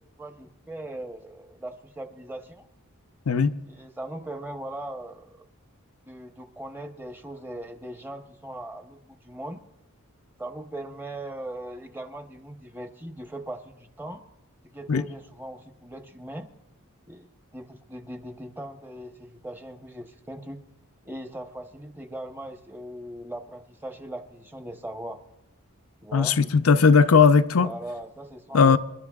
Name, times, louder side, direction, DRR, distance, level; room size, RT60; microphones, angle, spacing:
voice 1, 0.2-2.7 3.7-5.5 6.1-9.6 10.4-14.2 14.6-16.5 17.1-20.7 21.0-25.2 26.0-26.4 27.6-28.8, right 1 dB, 10° right, 0.9 m, -39 dB
voice 2, 26.1-27.7 28.5-28.8, left 5 dB, 75° left, 0.6 m, -18 dB
28.0 x 12.5 x 2.4 m
head